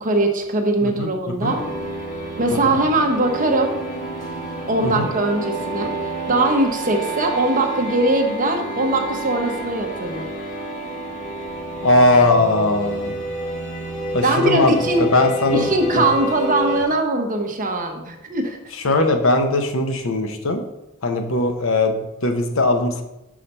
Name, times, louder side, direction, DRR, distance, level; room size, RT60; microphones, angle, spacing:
voice 1, 0.0-1.6 2.4-3.7 4.7-5.9 6.3-10.3 14.2-15.1 15.5-18.6, right 2 dB, 40° right, 3 dB, 1.0 m, -21 dB
sound 1, 1.5-16.8, right 1 dB, 40° left, 1.9 m, -29 dB
voice 2, 11.8-13.1 14.1-14.7 15.0-15.7 18.7-20.6 21.0-23.0, left 2 dB, 70° left, 5 dB, 0.9 m, -19 dB
5.7 x 4.9 x 5.4 m, 0.92 s
head